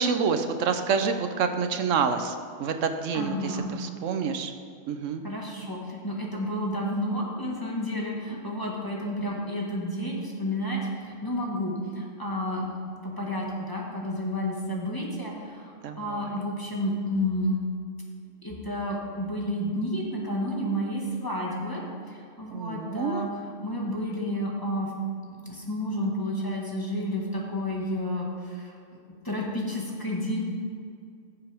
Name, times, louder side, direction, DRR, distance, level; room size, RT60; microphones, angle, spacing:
voice 1, 0.0-2.3 2.6-4.5 4.9-5.2 15.8-16.2 22.5-23.3, right 6 dB, 80° right, 7 dB, 1.0 m, -27 dB
voice 2, 3.1-3.7 5.2-12.7 13.0-17.6 18.4-21.8 22.1-24.9 25.3-29.0 29.2-30.4, equal, 15° left, -3 dB, 1.6 m, -31 dB
15.5 x 6.9 x 3.5 m, 2.4 s
omnidirectional pair, 1.3 m